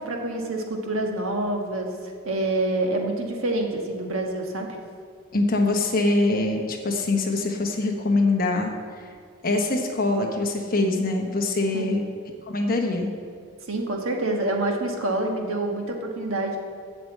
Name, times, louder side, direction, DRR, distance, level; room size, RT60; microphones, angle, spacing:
voice 1, 0.0-1.9 2.2-4.8 11.7-11.9 13.7-16.6, right 2 dB, 75° right, 2 dB, 1.3 m, -27 dB
voice 2, 5.3-8.7 9.4-12.0 12.5-13.1, left 2 dB, 40° left, 2 dB, 1.1 m, -23 dB
7.9 x 6.7 x 7.7 m, 2.1 s
head